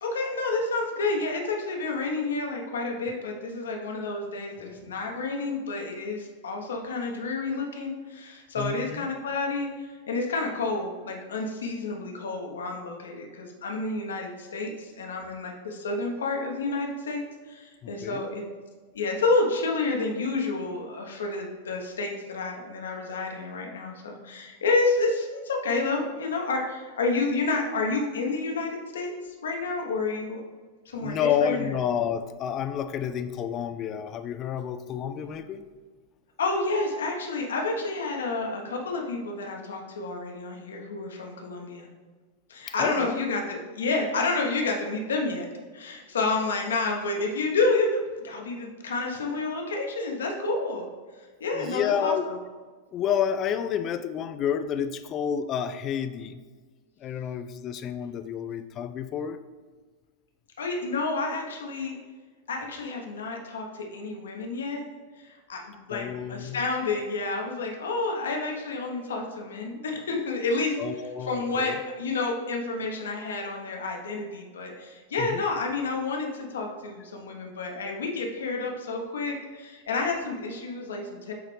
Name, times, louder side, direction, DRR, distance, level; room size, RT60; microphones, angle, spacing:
voice 1, 0.0-18.5 18.9-30.4 30.9-31.7 36.4-41.9 42.5-45.5 45.7-50.9 51.4-52.4 60.6-62.0 62.5-64.8 65.2-70.8 71.2-81.3, left 3 dB, 65° left, 1 dB, 1.0 m, -29 dB
voice 2, 8.6-9.1 17.8-18.2 31.0-35.6 42.8-43.2 51.5-52.3 52.9-56.4 57.0-59.4 65.9-66.6 70.8-71.8 75.2-75.4, left 8 dB, 30° left, 10 dB, 0.4 m, -29 dB
8.0 x 3.9 x 3.3 m, 1.4 s
figure-of-eight pair, 90°, 0 cm